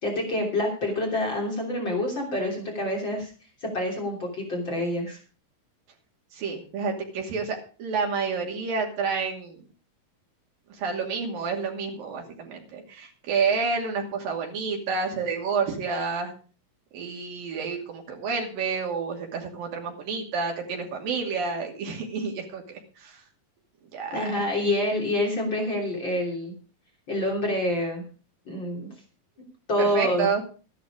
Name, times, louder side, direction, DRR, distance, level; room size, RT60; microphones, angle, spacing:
voice 1, 0.0-3.3 3.6-5.2 24.1-26.5 27.1-28.0 28.5-28.8 29.7-30.3, left 1 dB, 35° left, 1 dB, 3.7 m, -27 dB
voice 2, 6.3-9.6 10.7-16.3 16.9-23.2 23.9-24.4 29.8-30.4, right 5 dB, 85° right, 1 dB, 4.4 m, -29 dB
14.0 x 11.0 x 5.0 m, 0.37 s
omnidirectional pair, 3.9 m